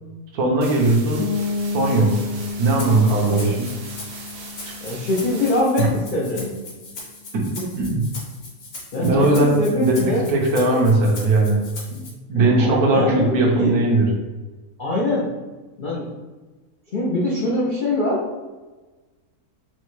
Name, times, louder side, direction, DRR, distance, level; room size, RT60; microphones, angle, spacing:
voice 1, 0.3-1.3 1.7-2.1 2.6-3.7 5.8-5.9 7.3-8.1 9.0-11.6 11.9-12.0 12.3-14.1, right 2 dB, 80° right, 0 dB, 1.2 m, -19 dB
sound 1, 0.6-5.6, right 4 dB, 60° right, 0.7 m, -39 dB
sound 2, 1.2-6.8, left 4 dB, 80° left, 2.2 m, -31 dB
Rattle (instrument), 2.5-12.1, left 3 dB, 50° left, 1.0 m, -39 dB
voice 2, 3.2-3.6 4.8-6.5 8.9-10.2 12.4-13.8 14.8-15.3 15.8-16.1 16.9-18.2, left 1 dB, 65° left, -5 dB, 0.5 m, -23 dB
4.5 x 2.1 x 3.0 m, 1.2 s
omnidirectional pair, 1.6 m